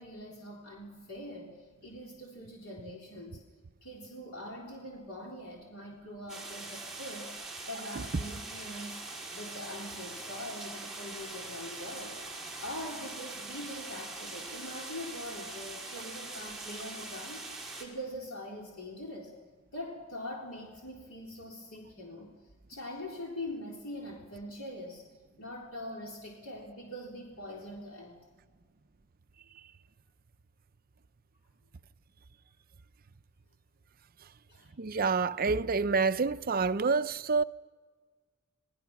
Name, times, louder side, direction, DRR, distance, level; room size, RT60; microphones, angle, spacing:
voice 1, 0.0-3.4 3.8-7.3 7.6-9.0 9.3-12.2 12.6-19.3 19.7-22.3 22.7-25.1 25.4-28.2 34.5-34.7, left 1 dB, 85° left, 3.7 m, -43 dB
sound 1, 6.3-17.9, right 2 dB, ahead, 4.5 m, -42 dB
voice 2, 34.8-37.4, right 4 dB, 45° right, 0.6 m, -27 dB
28.5 x 20.0 x 6.0 m
head